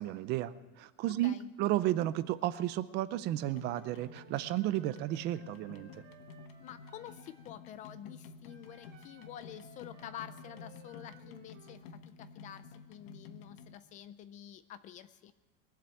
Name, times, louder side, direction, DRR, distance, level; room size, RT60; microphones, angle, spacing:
voice 1, 0.0-5.9, right 14 dB, 35° right, 14 dB, 0.6 m, -33 dB
sound 1, 3.4-13.8, left 5 dB, 80° left, 1.1 m, -52 dB
Wind instrument woodwind instrument, 3.4-7.5 8.4-11.8, right 7 dB, 55° right, 2.5 m, -60 dB
voice 2, 6.6-15.3, left 10 dB, 25° left, 13 dB, 0.4 m, -49 dB
22.0 x 7.7 x 8.4 m, 1.3 s
supercardioid pair, 170°, 29 cm